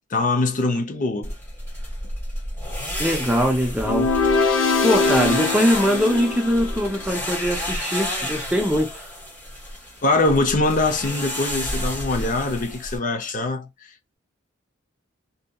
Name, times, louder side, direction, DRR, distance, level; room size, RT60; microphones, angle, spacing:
voice 1, 0.1-1.4 10.0-13.9, left 2 dB, 40° left, 0.5 m, -23 dB
sound 1, 1.2-13.0, equal, 10° left, 1.4 m, -31 dB
voice 2, 3.0-4.1 4.8-8.9, equal, 5° right, 0.5 m, -21 dB
sound 2, 3.8-7.1, left 4 dB, 80° left, 0.6 m, -22 dB
2.7 x 2.6 x 2.2 m
head